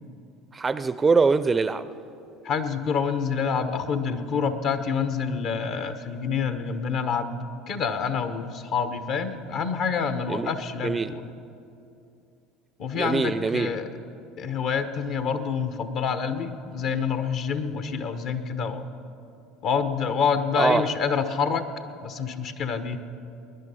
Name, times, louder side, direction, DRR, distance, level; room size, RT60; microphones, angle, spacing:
voice 1, 0.5-1.9 10.3-10.5 10.8-11.1 12.9-13.7 20.6-20.8, right 4 dB, 25° right, 0.5 m, -23 dB
voice 2, 2.4-7.4 7.7-11.2 12.8-13.9 14.4-18.8 19.6-21.7 22.0-23.0, left 6 dB, 55° left, 1.1 m, -27 dB
21.0 x 10.5 x 5.7 m
hypercardioid pair, 70°, 0 cm